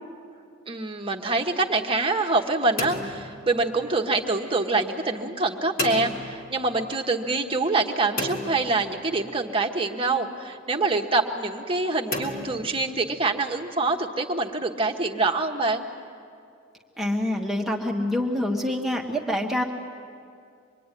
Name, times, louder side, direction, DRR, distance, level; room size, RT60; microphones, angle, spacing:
voice 1, 0.7-15.9, right 3 dB, 25° right, 2 dB, 1.2 m, -25 dB
sound 1, 2.8-4.1 5.8-6.8 8.2-9.4 12.1-13.3, left 1 dB, 45° left, 3.5 m, -33 dB
voice 2, 17.0-19.6, left 1 dB, ahead, -1 dB, 1.5 m, -26 dB
26.0 x 22.5 x 9.9 m, 2.4 s
head